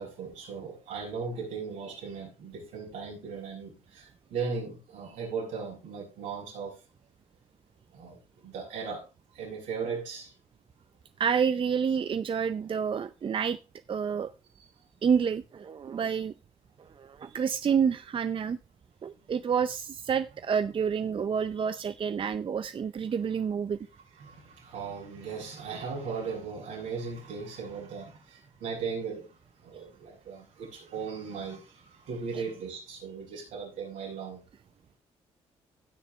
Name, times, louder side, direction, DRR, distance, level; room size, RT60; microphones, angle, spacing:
voice 1, 0.0-6.8 7.9-9.1 9.3-10.3 17.2-17.4 24.1-34.4, right 5 dB, 80° right, -2 dB, 6.3 m, -37 dB
voice 2, 11.2-13.6 13.9-14.3 15.0-16.3 17.0-18.6 19.0-23.8, right 7 dB, 40° right, 13 dB, 0.6 m, -28 dB
17.5 x 6.5 x 3.2 m, 0.31 s
supercardioid pair, 55°, 13 cm